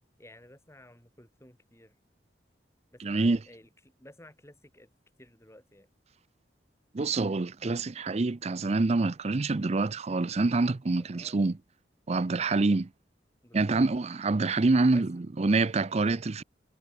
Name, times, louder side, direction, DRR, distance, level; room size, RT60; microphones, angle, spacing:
voice 1, 0.2-1.9 2.9-3.7 4.0-4.9 5.2-5.9 11.1-11.4 12.4-12.7 13.4-13.8 14.9-15.0, left 1 dB, 15° left, 4.5 m, -53 dB
voice 2, 3.0-3.4 6.9-11.6 12.1-12.9 13.5-16.4, right 3 dB, 35° right, 0.5 m, -26 dB
head